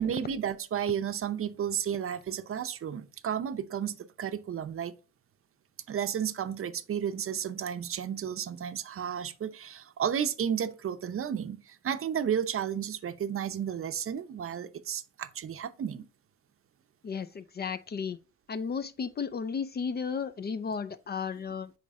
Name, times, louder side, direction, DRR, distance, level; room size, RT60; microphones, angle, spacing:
voice 1, 0.0-4.9 5.9-16.0, right 8 dB, 45° right, 0.6 m, -32 dB
voice 2, 17.0-18.2 18.5-21.7, left 6 dB, 35° left, 0.5 m, -34 dB
8.4 x 3.2 x 3.5 m
cardioid pair, 90°, 30 cm